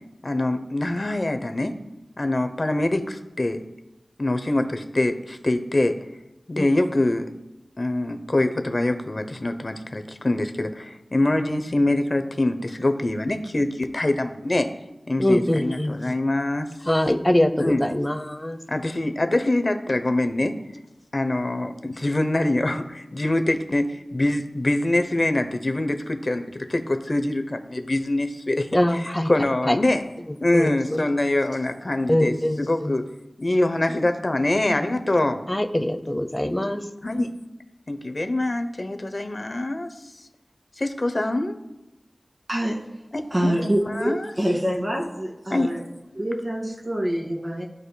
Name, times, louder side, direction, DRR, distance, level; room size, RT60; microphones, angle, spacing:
voice 1, 0.2-1.8 2.2-3.6 4.2-6.0 6.5-7.3 7.8-14.7 15.1-16.7 17.6-17.8 18.7-20.6 21.1-30.0 30.4-33.1 33.4-35.4 37.0-37.3 37.9-39.9 40.8-41.6 43.1-44.3 45.5-45.7, left 1 dB, 50° left, 7 dB, 0.7 m, -24 dB
voice 2, 15.2-15.9 16.9-18.6 28.7-29.3 29.7-29.8 30.5-31.0 32.1-32.9 35.5-36.8, left 1 dB, 20° left, 9 dB, 0.6 m, -23 dB
voice 3, 43.3-45.8 46.2-47.6, equal, 45° right, -3 dB, 2.1 m, -25 dB
13.5 x 4.9 x 2.2 m, 1.0 s
wide cardioid pair, 55°, 0 cm